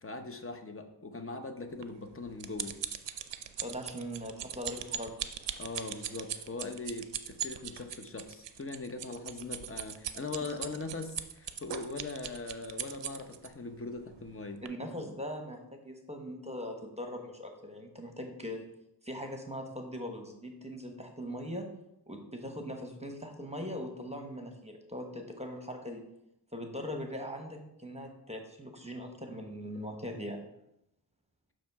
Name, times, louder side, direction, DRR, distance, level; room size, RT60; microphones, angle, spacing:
voice 1, 0.0-2.8 5.6-14.6, left 3 dB, 30° left, 5 dB, 0.8 m, -40 dB
sound 1, 1.8-13.5 14.1-14.3 14.7-14.8, right 9 dB, 75° right, 0.5 m, -39 dB
voice 2, 3.6-5.1 14.6-18.7 19.0-21.7 22.1-26.0 26.5-30.5, equal, 15° right, 3 dB, 1.0 m, -40 dB
6.9 x 3.1 x 5.5 m, 0.84 s
cardioid pair, 45°, 43 cm